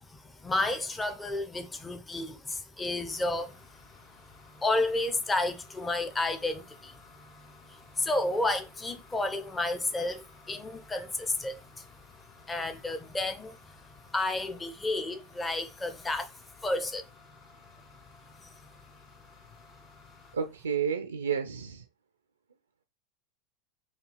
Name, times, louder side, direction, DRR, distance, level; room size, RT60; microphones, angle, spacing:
voice 1, 0.0-3.6 4.6-7.0 7.7-11.8 12.5-13.6 14.1-16.3 16.6-17.0, left 2 dB, 15° left, 0.7 m, -31 dB
sound 1, 3.1-20.4, left 4 dB, 45° left, 2.1 m, -56 dB
voice 2, 20.3-21.8, right 7 dB, 85° right, 0.4 m, -31 dB
4.7 x 2.3 x 3.3 m
hypercardioid pair, 90°, 0 cm